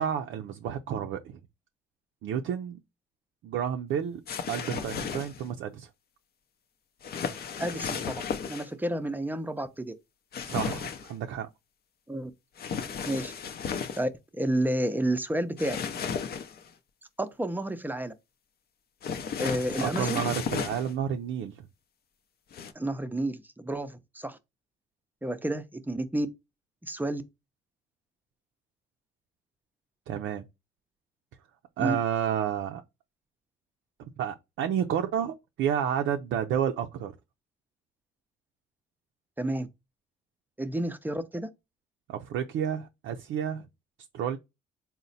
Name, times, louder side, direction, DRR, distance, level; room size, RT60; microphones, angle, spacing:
voice 1, 0.0-1.4 2.2-2.8 3.4-4.2 4.5-5.9 10.4-11.5 19.8-21.6 30.1-30.4 31.8-32.8 34.2-37.1 42.1-43.6 44.1-44.4, right 9 dB, 75° right, 0.4 m, -30 dB
sound 1, 4.3-5.5 7.0-8.7 10.3-11.1 12.6-14.0 15.6-16.7 19.0-20.9 22.5-22.7, left 6 dB, 50° left, 0.6 m, -34 dB
voice 2, 7.6-8.2 8.5-9.9 12.1-12.3 13.0-13.3 13.9-15.8 17.2-18.1 19.4-20.2 22.7-24.4 25.2-26.3 26.8-27.2 31.8-32.0 39.4-39.7 40.6-41.5, right 1 dB, 10° right, 0.5 m, -30 dB
4.0 x 2.1 x 3.9 m
cardioid pair, 90°, 20 cm